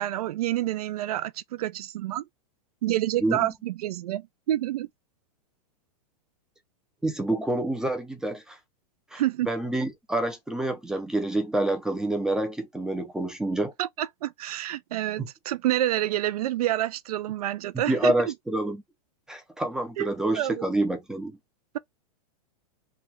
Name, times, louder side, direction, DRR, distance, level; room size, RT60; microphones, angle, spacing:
voice 1, 0.0-2.3 2.8-4.9 9.1-9.5 13.8-18.3 20.0-20.1 20.3-20.7, right 13 dB, 80° right, 0.4 m, -28 dB
voice 2, 7.0-8.6 9.1-13.7 15.2-15.3 17.7-18.8 19.3-21.4, right 1 dB, 5° right, 0.4 m, -27 dB
3.4 x 2.2 x 2.9 m
supercardioid pair, 155°, 19 cm